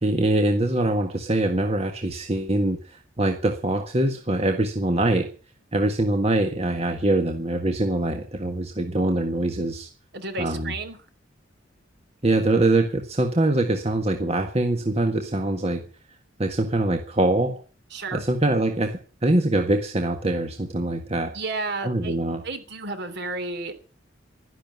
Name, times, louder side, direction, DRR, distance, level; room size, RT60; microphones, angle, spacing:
voice 1, 0.0-5.3 5.7-9.9 10.4-10.7 12.2-15.8 16.4-17.6 18.1-21.4 21.8-22.4, right 1 dB, 35° right, 4 dB, 1.6 m, -23 dB
voice 2, 10.1-11.0 17.9-18.2 21.3-22.2 22.4-23.7, right 3 dB, 60° right, 8 dB, 3.4 m, -31 dB
12.5 x 11.0 x 9.3 m, 0.38 s
head